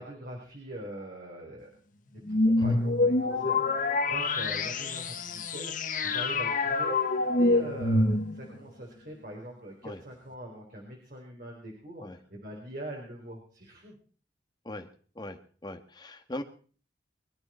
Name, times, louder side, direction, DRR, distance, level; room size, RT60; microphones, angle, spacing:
voice 1, 0.0-1.7 2.3-7.0 7.4-13.9, right 1 dB, 50° right, 0 dB, 4.2 m, -43 dB
sound 1, 2.3-8.6, left 2 dB, 45° left, 1.5 m, -26 dB
voice 2, 15.1-16.4, left 1 dB, 25° left, 6 dB, 1.7 m, -40 dB
23.5 x 12.5 x 4.5 m, 0.42 s
head